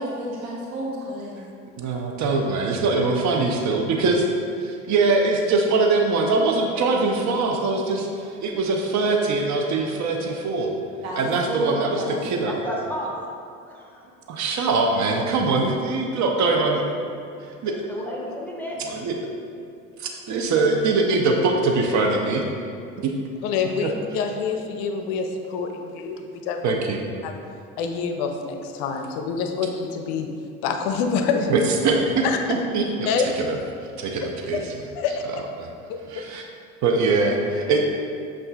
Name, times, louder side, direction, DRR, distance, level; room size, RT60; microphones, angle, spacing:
voice 1, 0.0-1.4 11.0-12.3 14.9-15.6, right 1 dB, 80° right, -4 dB, 1.0 m, -32 dB
voice 2, 1.8-4.3 4.6-10.7 11.2-12.5 14.3-16.8 17.4-17.7 18.8-19.1 20.0-22.5 23.0-23.1 23.8-23.9 26.6-27.0 31.5-33.1 33.4-33.6 34.0-34.6 35.6-35.7 36.1-36.4 36.8-37.8, right 3 dB, 45° right, 2 dB, 0.6 m, -22 dB
voice 3, 12.4-13.2 13.7-14.1 17.6-18.8, equal, 5° left, -3 dB, 1.0 m, -32 dB
voice 4, 23.4-26.7 27.2-27.3 27.8-30.3 30.6-31.5 32.2-32.4 33.1-33.3 34.5-34.6 34.9-35.4 35.9-36.2, left 6 dB, 65° left, 5 dB, 0.5 m, -26 dB
7.6 x 2.5 x 2.3 m, 2.4 s
hypercardioid pair, 70°, 40 cm